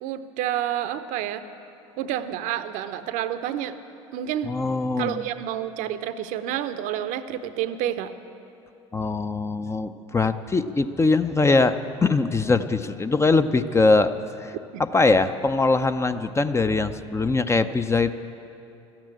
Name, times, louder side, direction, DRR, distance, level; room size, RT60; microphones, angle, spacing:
voice 1, 0.0-1.4 2.0-3.7 4.1-4.5 5.0-8.1 14.7-14.8, right 11 dB, 60° right, 11 dB, 0.7 m, -29 dB
voice 2, 4.4-5.3 8.9-14.1 14.4-18.1, left 3 dB, 20° left, 10 dB, 0.5 m, -22 dB
13.5 x 8.9 x 8.8 m, 2.8 s
hypercardioid pair, 70°, 15 cm